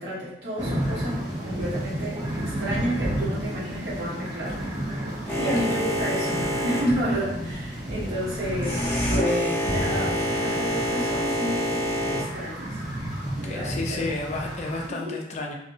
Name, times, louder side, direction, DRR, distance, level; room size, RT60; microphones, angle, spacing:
voice 1, 0.0-4.6 5.4-12.8 13.4-14.1 14.9-15.2, equal, 70° right, -9 dB, 1.2 m, -31 dB
sound 1, 0.6-14.9, right 1 dB, 25° right, 0.6 m, -32 dB
Boat Water vehicle, 5.3-12.2, equal, 10° left, 0.7 m, -28 dB
voice 2, 5.4-5.8 13.3-15.5, left 2 dB, 40° left, 0 dB, 0.4 m, -32 dB
2.5 x 2.0 x 2.7 m, 0.77 s
head